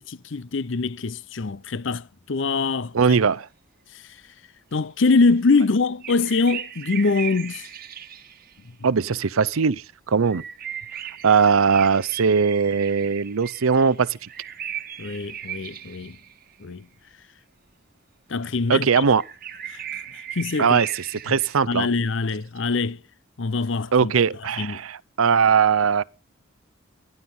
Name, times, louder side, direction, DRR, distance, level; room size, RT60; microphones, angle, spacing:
voice 1, 0.0-3.2 4.7-7.7 15.0-16.2 16.6-16.9 18.3-19.0 19.7-20.0 20.3-20.8 21.7-23.0 23.4-24.1 24.6-24.8, left 4 dB, 65° left, 0.6 m, -24 dB
voice 2, 2.9-3.5 8.8-10.4 11.2-14.3 18.7-19.2 20.6-21.9 23.9-26.0, right 6 dB, 85° right, 0.6 m, -20 dB
sound 1, 6.0-8.6 10.3-16.6 19.2-21.6, right 9 dB, 45° right, 1.3 m, -37 dB
13.5 x 11.0 x 5.5 m
head